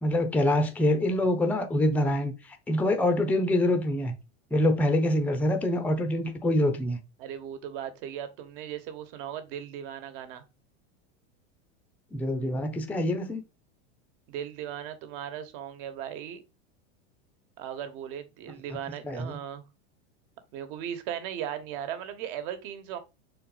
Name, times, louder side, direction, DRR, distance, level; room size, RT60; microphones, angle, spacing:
voice 1, 0.0-2.3 2.7-4.2 4.5-7.0 12.1-13.4 19.0-19.4, left 1 dB, 5° left, 0.7 m, -25 dB
voice 2, 7.2-10.4 14.3-16.4 17.6-19.6 20.5-23.0, right 10 dB, 55° right, 1.4 m, -37 dB
6.0 x 4.3 x 4.0 m
supercardioid pair, 140°, 33 cm